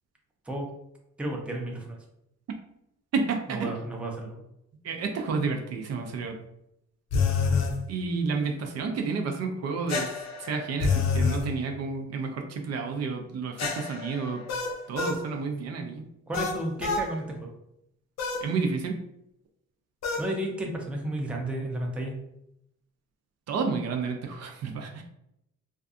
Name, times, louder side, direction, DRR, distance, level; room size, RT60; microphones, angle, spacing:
voice 1, 1.2-2.0 3.5-4.4 16.3-17.5 20.2-22.2, right 1 dB, 5° right, 0 dB, 0.5 m, -32 dB
voice 2, 3.1-3.7 4.8-6.4 7.9-10.1 10.4-14.4 14.9-16.0 18.4-19.0 23.5-25.0, right 4 dB, 60° right, 4 dB, 0.4 m, -30 dB
sound 1, 7.1-7.8 9.9-11.4 13.6-15.2 16.3-17.1 18.2-18.5 20.0-20.3, left 5 dB, 60° left, 0.5 m, -27 dB
2.5 x 2.3 x 2.4 m, 0.80 s
cardioid pair, 90°, 30 cm